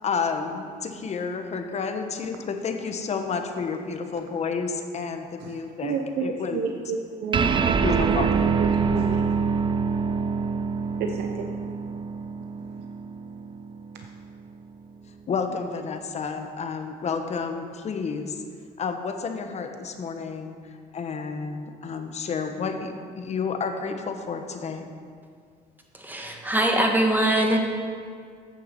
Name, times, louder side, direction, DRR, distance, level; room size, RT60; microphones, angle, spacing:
voice 1, 0.0-6.6 7.8-8.3 15.3-18.4 18.8-20.6 20.9-24.9, left 5 dB, 40° left, 6 dB, 1.0 m, -30 dB
voice 2, 5.4-8.3 8.6-9.2 11.0-11.5 13.9-14.1, right 5 dB, 75° right, 4 dB, 0.7 m, -31 dB
sound 1, 7.3-14.1, right 5 dB, 30° right, 0.5 m, -25 dB
voice 3, 26.0-27.6, right 1 dB, 10° right, 2 dB, 1.4 m, -22 dB
9.3 x 6.9 x 6.8 m, 2.1 s
cardioid pair, 110°, 17 cm